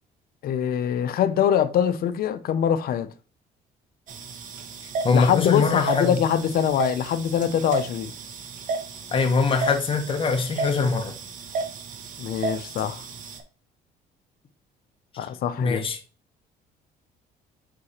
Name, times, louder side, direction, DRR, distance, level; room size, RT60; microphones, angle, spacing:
voice 1, 0.4-3.1 5.1-8.1 12.2-13.0 15.2-15.8, left 9 dB, 60° left, 0.7 m, -23 dB
sound 1, 4.1-13.4, right 4 dB, 50° right, 1.1 m, -33 dB
voice 2, 5.0-6.2 9.1-11.1 15.6-16.0, left 4 dB, 30° left, 1.0 m, -22 dB
4.9 x 4.8 x 4.2 m
cardioid pair, 110°, 17 cm